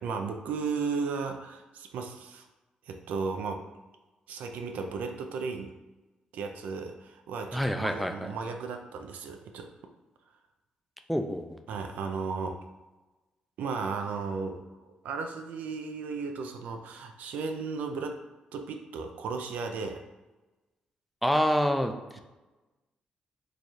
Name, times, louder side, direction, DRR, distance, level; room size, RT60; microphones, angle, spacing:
voice 1, 0.0-2.4 2.9-3.6 4.3-5.7 6.3-9.7 11.7-12.6 13.6-18.2 18.5-20.0, right 4 dB, 80° right, 5 dB, 0.4 m, -35 dB
voice 2, 7.5-8.3 11.1-11.6 21.2-22.2, equal, ahead, 6 dB, 0.4 m, -27 dB
3.2 x 2.3 x 4.1 m, 1.1 s
cardioid pair, 85°, 3 cm